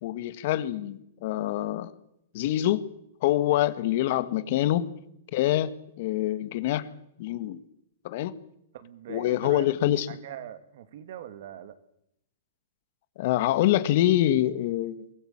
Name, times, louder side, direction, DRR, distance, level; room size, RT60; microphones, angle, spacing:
voice 1, 0.0-1.9 2.3-2.8 3.2-4.9 5.3-6.9 7.2-7.6 8.0-8.4 9.1-10.1 13.2-15.1, left 13 dB, 55° left, 14 dB, 1.7 m, -25 dB
voice 2, 8.7-11.8, right 10 dB, 65° right, 12 dB, 2.5 m, -42 dB
23.0 x 16.5 x 8.9 m, 0.76 s
hypercardioid pair, 130°, 0 cm